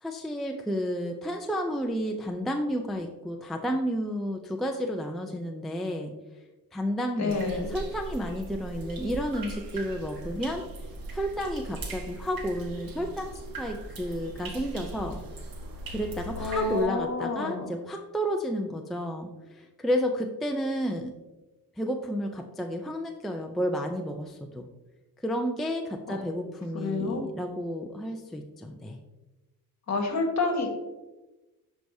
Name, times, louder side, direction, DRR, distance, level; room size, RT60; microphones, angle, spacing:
voice 1, 0.0-6.1 6.7-10.6 11.1-15.2 15.9-21.1 21.8-24.7 25.2-29.0, equal, ahead, 2 dB, 0.4 m, -31 dB
voice 2, 7.2-7.7 16.3-17.7 26.1-26.2 26.7-27.3 29.9-30.7, left 3 dB, 45° left, 3 dB, 1.5 m, -29 dB
sound 1, 7.3-16.9, right 2 dB, 60° right, 1.3 m, -40 dB
11.0 x 4.8 x 2.7 m, 1.1 s
cardioid pair, 125°, 39 cm